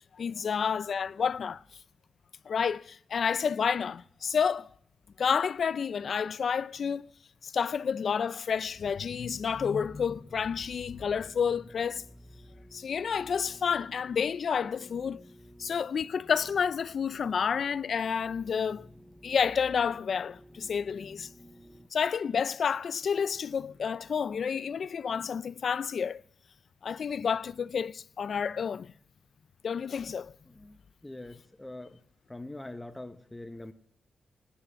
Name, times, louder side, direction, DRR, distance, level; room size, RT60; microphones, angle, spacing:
voice 1, 0.1-1.6 2.5-4.7 5.2-7.1 7.4-12.0 12.7-15.3 15.6-18.9 19.2-21.3 21.9-26.2 26.8-28.9 29.6-30.3, left 6 dB, 65° left, 0.5 m, -30 dB
sound 1, 8.5-21.9, equal, 5° right, 1.9 m, -54 dB
voice 2, 30.5-30.8 31.0-32.0 32.3-33.7, left 2 dB, 15° left, 1.1 m, -43 dB
19.0 x 10.0 x 7.4 m
cardioid pair, 65°, 0 cm